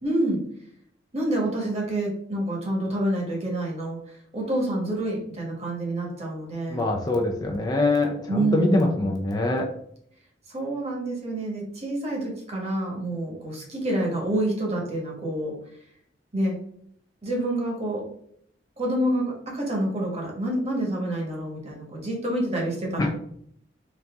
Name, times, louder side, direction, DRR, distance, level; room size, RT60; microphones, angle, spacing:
voice 1, 0.0-0.4 1.1-6.8 8.3-8.8 10.5-15.6 16.3-16.6 17.2-18.0 18.8-23.1, right 1 dB, 35° right, -1 dB, 1.3 m, -27 dB
voice 2, 6.7-9.7 23.0-23.1, left 2 dB, 20° left, 1 dB, 0.4 m, -24 dB
4.0 x 2.7 x 3.4 m, 0.68 s
head